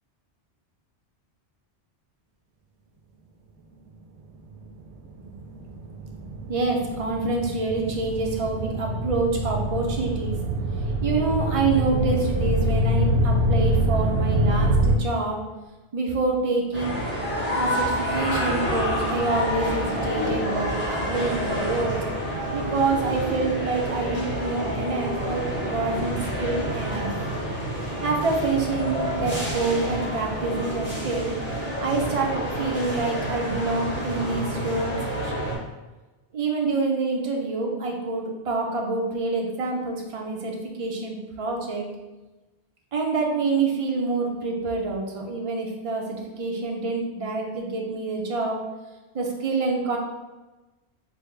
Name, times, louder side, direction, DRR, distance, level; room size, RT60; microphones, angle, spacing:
sound 1, 4.6-15.0, right 1 dB, 80° right, 0.8 m, -25 dB
voice 1, 6.5-10.4 11.0-15.4 15.9-17.0 17.5-22.0 22.5-27.1 28.0-31.3 31.8-35.0 35.2-35.3 36.3-41.9 42.9-48.6 49.1-50.0, right 3 dB, 45° right, 0 dB, 0.4 m, -27 dB
sound 2, 16.7-35.6, equal, 10° left, 0.8 m, -28 dB
sound 3, 16.8-21.8, equal, 40° left, 0.7 m, -38 dB
3.3 x 2.1 x 3.7 m, 1.1 s
omnidirectional pair, 1.1 m